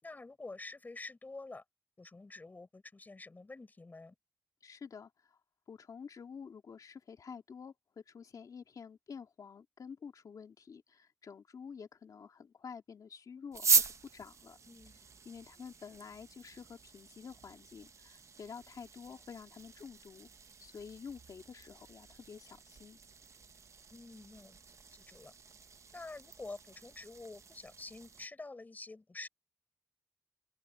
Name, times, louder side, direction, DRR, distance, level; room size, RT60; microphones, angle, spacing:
voice 1, 0.0-1.6 2.0-4.1 14.6-15.0 23.9-25.3 25.9-29.3, left 3 dB, 30° left, 4.3 m, -48 dB
voice 2, 4.6-5.4 5.7-13.7 14.1-14.6 15.2-20.3 20.6-23.0, left 6 dB, 80° left, 2.4 m, -49 dB
sound 1, 13.5-28.3, right 5 dB, 55° right, 0.8 m, -39 dB
open air
wide cardioid pair, 145°, 6 cm